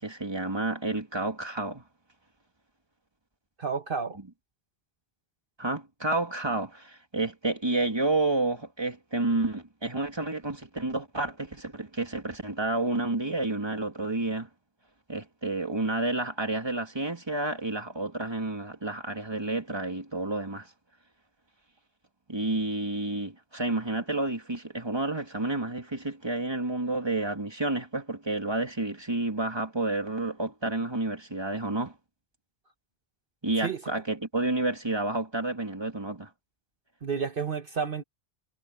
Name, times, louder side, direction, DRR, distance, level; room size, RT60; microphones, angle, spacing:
voice 1, 0.0-1.8 5.6-14.5 15.1-20.7 22.3-31.9 33.4-36.3, right 2 dB, 25° right, 2.5 m, -30 dB
voice 2, 3.6-4.2 33.6-33.8 37.0-38.0, right 6 dB, 60° right, 1.5 m, -30 dB
omnidirectional pair, 1.0 m